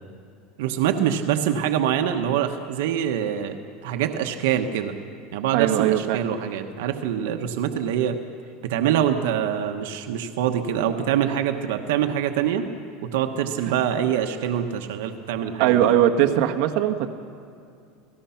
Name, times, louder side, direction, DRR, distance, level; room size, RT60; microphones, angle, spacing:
voice 1, 0.6-4.9 5.3-8.2 8.6-12.7 13.0-15.9, right 9 dB, 80° right, 5 dB, 1.2 m, -25 dB
voice 2, 5.5-6.2 13.6-13.7 15.6-17.1, right 11 dB, 60° right, 4 dB, 1.4 m, -20 dB
30.0 x 18.5 x 5.8 m, 2.4 s
supercardioid pair, 150°, 0 cm